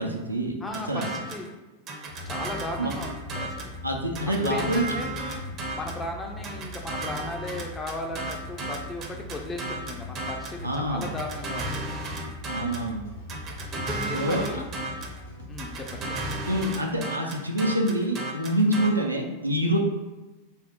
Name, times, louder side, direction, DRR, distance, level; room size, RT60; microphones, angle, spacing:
voice 1, 0.0-0.6 0.9-1.1 2.8-2.9 3.8-4.9 10.6-11.1 12.5-13.1 14.1-14.6 16.5-19.8, right 1 dB, 85° right, 1 dB, 0.4 m, -26 dB
voice 2, 0.6-1.5 2.3-3.7 4.3-5.1 5.7-11.9 13.7-14.7 15.5-16.3, left 2 dB, 15° left, 2 dB, 0.5 m, -36 dB
sound 1, 0.7-1.5 1.9-3.8 4.1-6.0 6.4-10.6 11.0-12.9 13.3-15.2 15.6-18.9, right 2 dB, 30° right, 0.5 m, -34 dB
sound 2, 2.1-16.7, left 1 dB, 60° left, 0.9 m, -41 dB
3.4 x 2.0 x 4.2 m, 1.1 s
figure-of-eight pair, 90°, 0 cm